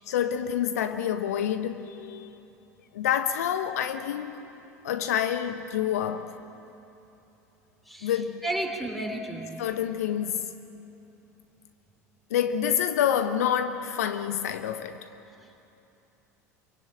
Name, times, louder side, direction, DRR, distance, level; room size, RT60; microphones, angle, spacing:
voice 1, 0.1-2.4 2.9-4.4 4.8-6.4 8.0-8.5 9.6-10.5 12.3-15.1, left 9 dB, 65° left, 1.0 m, -28 dB
voice 2, 8.4-9.5, right 1 dB, ahead, 3.7 m, -31 dB
26.0 x 24.0 x 8.6 m
figure-of-eight pair, 70°, 9 cm